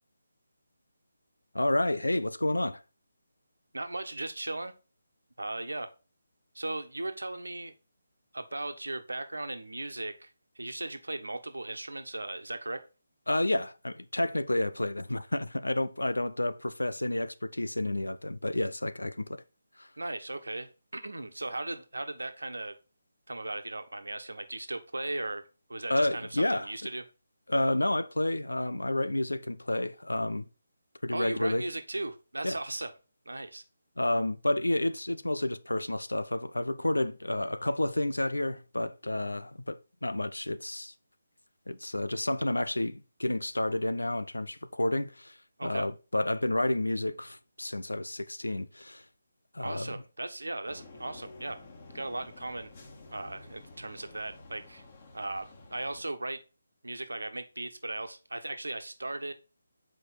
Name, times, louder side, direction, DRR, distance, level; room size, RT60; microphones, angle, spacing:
voice 1, 1.5-2.8 13.3-19.4 19.8-19.9 25.9-26.7 27.5-30.5 31.0-31.6 32.4-32.6 34.0-40.9 41.7-49.0 49.5-50.0, left 1 dB, 75° left, 0.7 m, -30 dB
voice 2, 3.7-4.7 5.4-5.9 6.5-7.7 8.3-10.3 10.6-12.9 20.0-22.7 23.3-27.0 31.1-32.9 33.2-33.6 45.6-45.8 49.6-51.6 51.9-52.7 53.1-54.8 55.1-56.4 56.8-59.3, right 2 dB, 70° right, 1.2 m, -37 dB
Fire Truck Passing, 50.7-56.0, left 2 dB, 30° left, 1.6 m, -50 dB
7.8 x 5.0 x 4.1 m
figure-of-eight pair, 150°, 0 cm